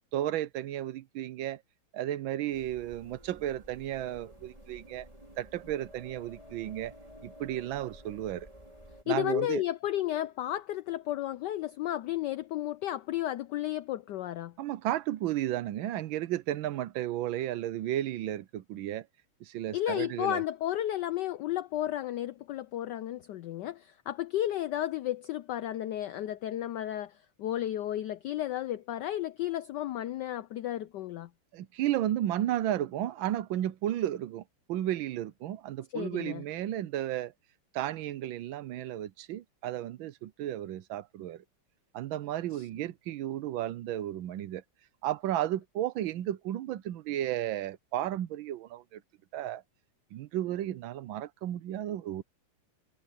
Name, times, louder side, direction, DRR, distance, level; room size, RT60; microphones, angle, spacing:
voice 1, 0.1-1.6 1.9-5.1 5.4-6.9 7.2-8.5 9.1-9.6 14.6-19.1 19.4-20.4 31.5-34.4 34.7-37.3 37.7-41.4 41.9-44.6 45.0-49.0 49.3-49.6 50.1-52.2, right 12 dB, 70° right, 1.4 m, -33 dB
sound 1, 2.5-9.0, equal, 15° right, 5.4 m, -52 dB
voice 2, 9.1-14.5 19.7-31.3 35.9-36.4 42.5-42.6, left 13 dB, 85° left, 0.9 m, -33 dB
omnidirectional pair, 2.4 m